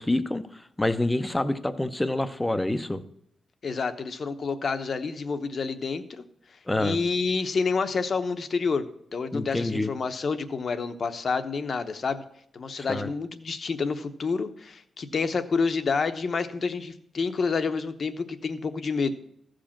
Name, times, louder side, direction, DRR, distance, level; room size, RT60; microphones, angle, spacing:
voice 1, 0.0-3.0 6.7-7.0 9.3-9.9 12.8-13.1, left 1 dB, 10° left, 11 dB, 0.6 m, -27 dB
voice 2, 3.6-6.2 6.8-8.9 9.1-12.2 12.5-19.1, left 4 dB, 45° left, 10 dB, 0.8 m, -28 dB
14.5 x 5.1 x 7.2 m, 0.73 s
wide cardioid pair, 165°, 0 cm